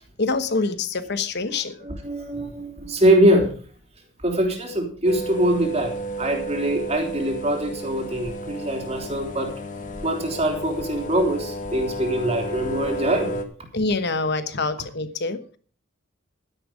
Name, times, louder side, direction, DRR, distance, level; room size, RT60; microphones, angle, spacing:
voice 1, 0.2-1.8 13.7-15.6, left 3 dB, 55° left, 11 dB, 1.2 m, -25 dB
voice 2, 1.8-3.5 4.2-9.5 10.0-13.4, right 1 dB, 30° right, 3 dB, 3.2 m, -23 dB
sound 1, 5.0-13.4, right 1 dB, 40° left, 1.5 m, -32 dB
12.0 x 10.5 x 5.1 m, 0.43 s
head